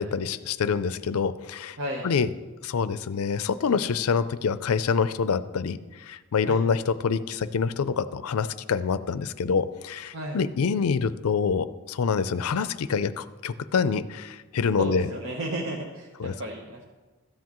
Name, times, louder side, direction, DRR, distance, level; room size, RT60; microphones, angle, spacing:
voice 1, 0.0-1.8 2.0-2.3 2.6-15.1 16.2-16.3, left 5 dB, 90° left, 14 dB, 0.4 m, -26 dB
voice 2, 1.8-2.1 6.4-6.6 10.1-10.4 14.8-16.8, right 1 dB, 65° right, -1 dB, 1.0 m, -33 dB
13.5 x 9.5 x 3.0 m, 1.2 s
head